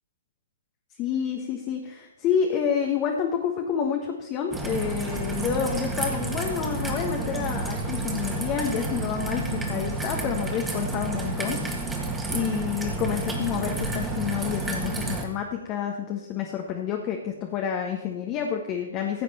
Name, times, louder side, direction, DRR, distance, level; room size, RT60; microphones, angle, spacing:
voice 1, 1.0-19.2, left 8 dB, 30° left, 2 dB, 1.3 m, -29 dB
Raindrop / Trickle dribble, 4.5-15.2, right 2 dB, 5° right, 1.8 m, -30 dB
15.5 x 8.3 x 4.3 m, 0.99 s
figure-of-eight pair, 120°, 0 cm